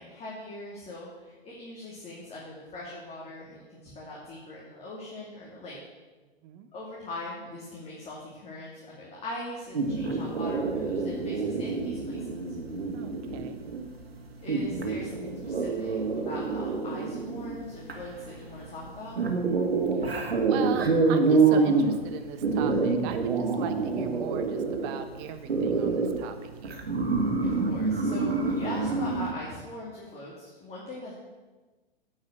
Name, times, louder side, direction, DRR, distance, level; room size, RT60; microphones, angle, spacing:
voice 1, 0.0-5.8 6.7-12.4 14.4-19.2 27.4-31.1, left 1 dB, 20° left, -4 dB, 2.4 m, -41 dB
sound 1, 9.7-29.3, right 4 dB, 85° right, 1.9 m, -28 dB
voice 2, 12.9-13.6 19.9-26.8, right 9 dB, 40° right, 9 dB, 1.2 m, -38 dB
10.5 x 5.6 x 7.9 m, 1.3 s
hypercardioid pair, 115°, 30 cm